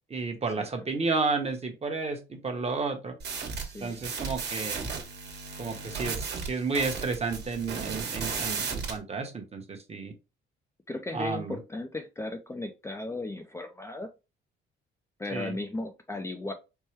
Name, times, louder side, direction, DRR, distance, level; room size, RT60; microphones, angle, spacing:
voice 1, 0.1-3.2 3.8-4.9 5.6-10.1 11.1-11.6 15.3-15.6, right 4 dB, 30° right, 4 dB, 1.0 m, -32 dB
sound 1, 3.2-9.0, right 5 dB, 55° right, 1.3 m, -35 dB
voice 2, 3.6-4.0 10.9-14.1 15.2-16.5, left 2 dB, 15° left, 5 dB, 0.5 m, -36 dB
4.6 x 2.1 x 3.2 m, 0.28 s
cardioid pair, 90°, 20 cm